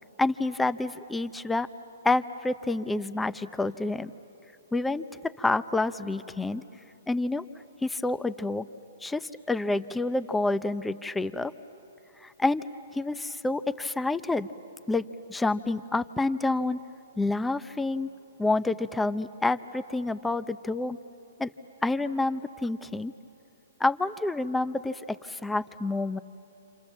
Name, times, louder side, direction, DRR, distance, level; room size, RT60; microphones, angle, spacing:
voice 1, 0.2-1.7 2.0-4.1 4.7-6.6 7.1-7.4 7.8-8.7 9.0-11.5 12.2-12.6 12.9-14.5 14.9-15.0 15.3-16.8 17.2-18.1 18.4-21.0 21.4-21.5 21.8-23.1 23.8-26.2, left 2 dB, 5° left, 13 dB, 0.6 m, -28 dB
28.5 x 27.5 x 7.4 m, 3.0 s
hypercardioid pair, 135°, 0 cm